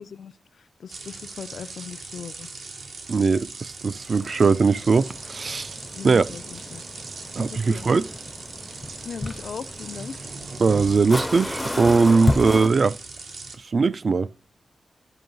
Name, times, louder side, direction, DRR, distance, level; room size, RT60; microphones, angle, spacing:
voice 1, 0.0-2.5 6.0-6.8 7.4-7.9 9.0-10.3, left 6 dB, 80° left, 0.3 m, -39 dB
sound 1, 0.9-13.6, right 3 dB, 90° right, 1.0 m, -39 dB
voice 2, 3.1-5.7 6.0-6.2 7.4-8.1 10.6-13.0 13.7-14.3, right 4 dB, 55° right, 0.3 m, -20 dB
sound 2, 4.1-12.7, left 1 dB, 10° left, 0.4 m, -32 dB
11.0 x 5.3 x 3.9 m
wide cardioid pair, 90°, 0 cm